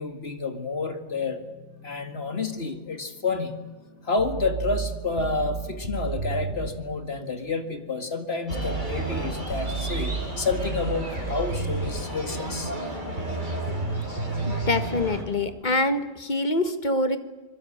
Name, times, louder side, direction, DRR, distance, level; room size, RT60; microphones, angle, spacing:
voice 1, 0.0-1.4 1.8-3.6 4.0-12.7 14.5-14.6, left 3 dB, 60° left, 8 dB, 2.3 m, -29 dB
sound 1, 1.1-16.0, left 4 dB, 80° left, 7.3 m, -52 dB
sound 2, 4.2-6.8 8.5-12.1 13.2-14.8, right 4 dB, 70° right, 3.8 m, -31 dB
sound 3, 8.5-15.2, equal, 40° right, 4.8 m, -34 dB
voice 2, 14.5-17.2, left 2 dB, 40° left, 10 dB, 1.8 m, -25 dB
25.5 x 22.0 x 8.8 m, 1.2 s
omnidirectional pair, 1.2 m